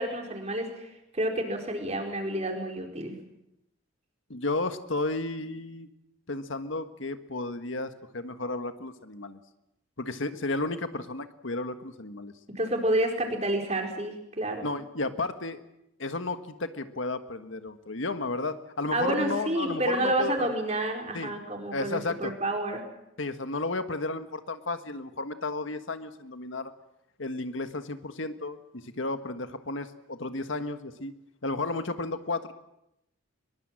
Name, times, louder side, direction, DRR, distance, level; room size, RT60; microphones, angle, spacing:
voice 1, 0.0-3.1 12.5-14.7 18.9-22.8, right 1 dB, 35° right, 2 dB, 4.6 m, -29 dB
voice 2, 4.3-5.9 6.3-9.4 10.0-12.3 14.6-15.6 16.0-20.5 21.1-21.3 21.7-22.3 23.2-26.7 27.2-31.1 31.4-32.5, left 2 dB, 75° left, 9 dB, 1.5 m, -33 dB
23.5 x 22.5 x 7.6 m, 0.86 s
head